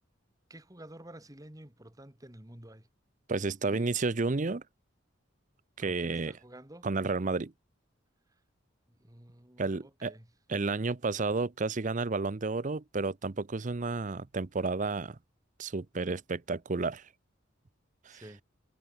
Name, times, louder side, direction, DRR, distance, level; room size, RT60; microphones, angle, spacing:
voice 1, 0.5-2.9 3.6-3.9 5.8-6.9 9.0-10.3 18.1-18.4, right 1 dB, 20° right, 2.1 m, -50 dB
voice 2, 3.3-4.6 5.8-6.3 6.8-7.5 9.6-10.1 10.5-15.2 15.6-17.0 18.1-18.2, right 3 dB, 40° right, 0.6 m, -31 dB
head